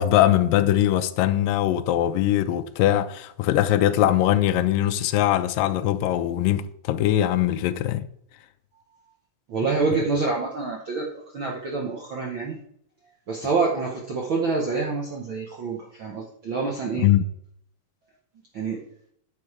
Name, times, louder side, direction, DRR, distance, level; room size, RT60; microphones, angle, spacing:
voice 1, 0.0-8.1 17.0-17.2, left 12 dB, 85° left, 2.3 m, -21 dB
voice 2, 9.5-12.6 13.3-17.1 18.5-18.8, right 4 dB, 65° right, 1.2 m, -27 dB
9.4 x 7.8 x 4.9 m
omnidirectional pair, 3.9 m